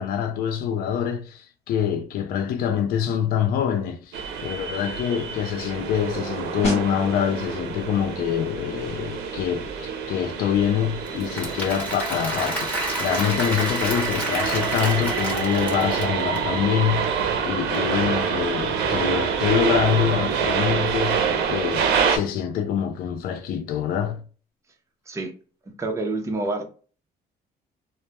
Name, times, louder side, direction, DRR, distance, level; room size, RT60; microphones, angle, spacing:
voice 1, 0.0-17.1 17.4-24.2, left 8 dB, 60° left, 0.4 m, -25 dB
sound 1, 4.1-22.2, right 6 dB, 80° right, 0.5 m, -27 dB
sound 2, 6.6-17.1 17.4-17.7, left 1 dB, 40° left, 0.9 m, -38 dB
Applause / Crowd, 11.0-16.4, equal, 10° left, 1.0 m, -30 dB
voice 2, 25.8-26.6, right 2 dB, 15° right, 0.5 m, -27 dB
2.1 x 2.1 x 2.8 m
cardioid pair, 110°, 17 cm